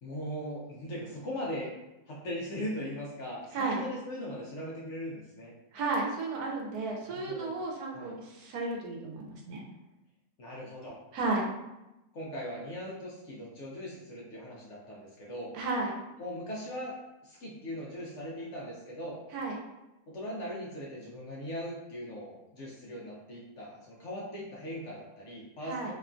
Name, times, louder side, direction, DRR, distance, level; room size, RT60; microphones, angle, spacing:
voice 1, 0.0-1.7 2.1-5.5 7.0-7.5 7.9-8.1 10.4-11.0 12.1-15.5 16.2-16.9 17.2-19.2 20.1-25.9, equal, 65° left, -4 dB, 0.8 m, -39 dB
voice 2, 5.7-9.6 11.1-11.5 15.5-15.9 19.3-19.6 25.7-25.9, right 3 dB, 85° right, 0 dB, 1.1 m, -33 dB
2.9 x 2.2 x 2.4 m, 0.97 s
omnidirectional pair, 1.6 m